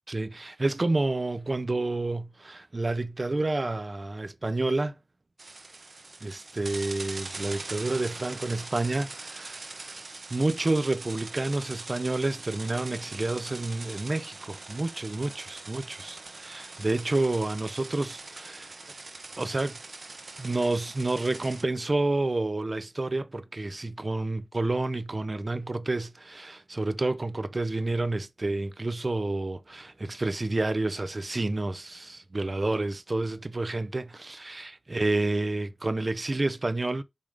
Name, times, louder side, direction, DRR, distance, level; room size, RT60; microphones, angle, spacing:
voice 1, 0.1-5.0 6.2-9.9 10.3-18.7 19.4-19.8 20.4-37.0, right 2 dB, 40° right, 0.6 m, -29 dB
sound 1, 5.4-21.6, right 3 dB, 65° right, 0.9 m, -42 dB
5.4 x 3.6 x 5.0 m
wide cardioid pair, 65°, 0 cm